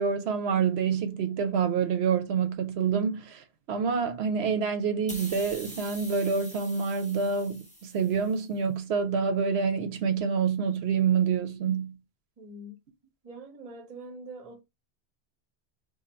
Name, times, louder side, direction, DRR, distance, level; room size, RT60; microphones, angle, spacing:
voice 1, 0.0-12.0, right 6 dB, 75° right, 0.8 m, -27 dB
sound 1, 5.1-8.5, equal, 10° left, 0.8 m, -45 dB
voice 2, 12.4-12.8 13.2-14.6, right 1 dB, 40° right, 0.8 m, -44 dB
2.6 x 2.5 x 4.2 m
omnidirectional pair, 1.1 m